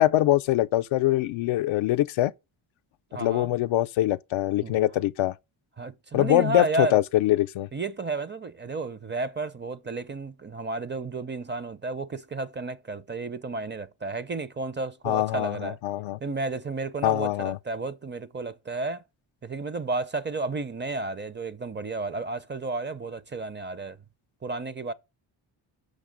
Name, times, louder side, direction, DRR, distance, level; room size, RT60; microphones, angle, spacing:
voice 1, 0.0-2.3 3.1-5.3 6.1-7.7 15.0-16.2 17.0-17.6, left 14 dB, 80° left, 0.6 m, -23 dB
voice 2, 3.1-3.5 4.6-4.7 5.8-7.0 7.7-15.8 16.2-19.0 19.4-24.0 24.4-24.9, right 3 dB, 25° right, 0.5 m, -32 dB
6.6 x 5.4 x 5.1 m
cardioid pair, 90°, 47 cm